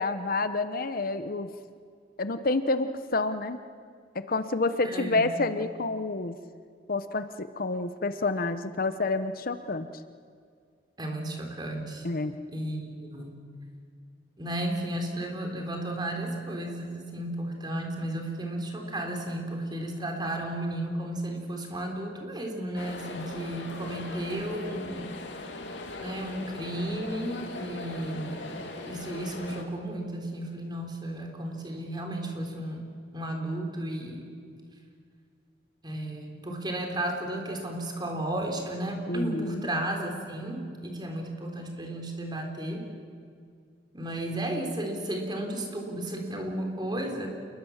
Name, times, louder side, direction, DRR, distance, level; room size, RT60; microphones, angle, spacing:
voice 1, 0.0-1.5 2.2-3.6 4.1-6.3 6.9-9.9 12.0-12.3 39.1-39.7, left 3 dB, 55° left, 10 dB, 1.0 m, -28 dB
voice 2, 4.8-5.3 11.0-12.1 12.5-13.4 14.4-25.2 26.0-28.5 28.9-32.9 33.1-34.3 35.8-42.9 43.9-47.3, right 1 dB, 25° right, 3 dB, 3.9 m, -33 dB
sound 1, 22.8-29.6, left 2 dB, 90° left, 2.7 m, -40 dB
28.0 x 21.5 x 7.4 m, 2.2 s
head